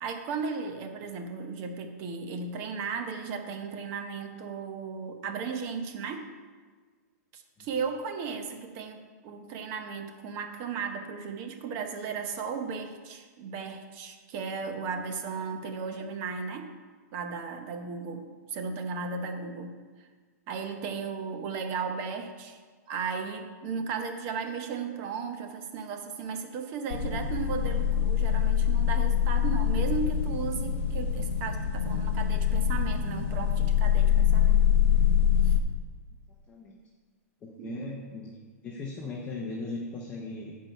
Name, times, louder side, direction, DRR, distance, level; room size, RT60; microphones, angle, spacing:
voice 1, 0.0-6.3 7.3-16.7 17.1-20.1 20.5-22.6 22.9-34.6 35.4-35.6 37.6-38.0, right 5 dB, 30° right, 6 dB, 0.8 m, -35 dB
sound 1, 26.9-35.6, left 9 dB, 45° left, 0.6 m, -25 dB
voice 2, 36.5-36.8 37.4-38.3 38.6-40.6, left 3 dB, 15° left, -2 dB, 0.8 m, -38 dB
8.8 x 4.7 x 6.7 m, 1.5 s
hypercardioid pair, 165°, 9 cm